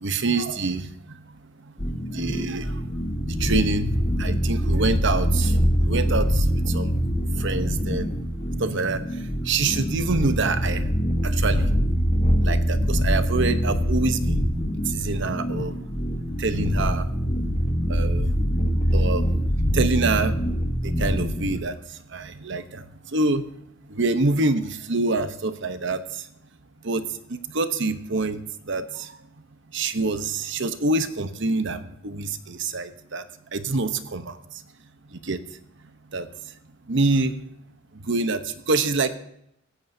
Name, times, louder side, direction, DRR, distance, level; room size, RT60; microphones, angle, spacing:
voice 1, 0.0-0.9 2.1-2.7 3.3-3.9 4.2-5.5 5.8-6.4 6.7-6.9 7.4-8.1 8.6-9.0 9.4-10.8 11.2-11.7 12.4-14.4 14.9-15.7 16.4-17.1 17.9-18.3 18.9-19.2 19.7-20.4 20.8-21.7 22.1-22.8 23.1-23.4 23.9-26.0 26.8-28.4 28.7-29.1 29.7-33.2 33.5-34.3 35.2-35.4 36.1-36.3 36.9-37.3 38.1-39.1, right 3 dB, 65° right, 10 dB, 1.0 m, -25 dB
sound 1, 1.8-21.6, equal, 30° left, 1.4 m, -24 dB
16.0 x 15.0 x 2.8 m, 0.76 s
head